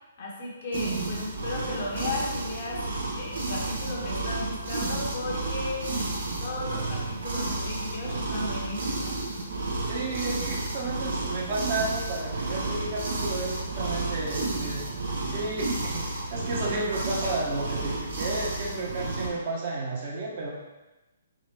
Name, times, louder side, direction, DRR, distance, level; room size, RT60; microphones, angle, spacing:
voice 1, 0.2-5.9 6.4-9.2, left 2 dB, 50° left, -3 dB, 1.3 m, -35 dB
sound 1, 0.7-19.3, right 2 dB, 70° right, 1.2 m, -31 dB
voice 2, 9.9-14.8 15.3-20.5, right 2 dB, 45° right, -3 dB, 1.3 m, -32 dB
4.0 x 3.9 x 3.2 m, 1.1 s
hypercardioid pair, 150°, 0 cm